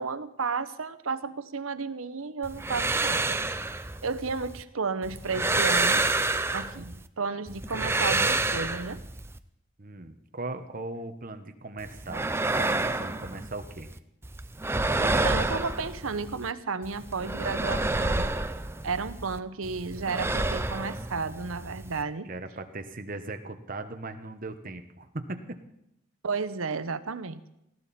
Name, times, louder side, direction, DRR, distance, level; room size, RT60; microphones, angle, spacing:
voice 1, 0.0-3.4 4.0-6.1 6.5-9.0 15.0-18.3 18.8-22.3 26.2-27.4, right 4 dB, 80° right, 12 dB, 0.9 m, -33 dB
sound 1, 2.4-4.6 5.0-7.1 7.5-9.4 11.8-14.0 14.2-16.5 16.8-19.4 19.6-22.0, right 2 dB, 10° right, 0.5 m, -29 dB
voice 2, 9.8-12.3 12.6-13.9 22.2-25.6, right 2 dB, 40° right, 7 dB, 1.2 m, -38 dB
19.5 x 15.5 x 4.3 m, 0.84 s
head